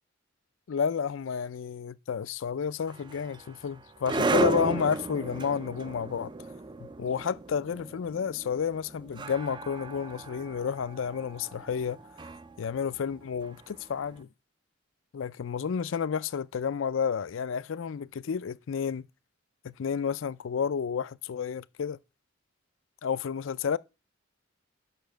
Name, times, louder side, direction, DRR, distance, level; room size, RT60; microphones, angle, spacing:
voice 1, 0.7-6.3 6.8-12.0 12.6-14.3 15.1-19.1 19.6-22.0 23.0-23.8, left 7 dB, 70° left, 0.4 m, -31 dB
sound 1, 2.9-14.0, right 2 dB, 20° right, 0.4 m, -34 dB
6.8 x 5.8 x 6.3 m
head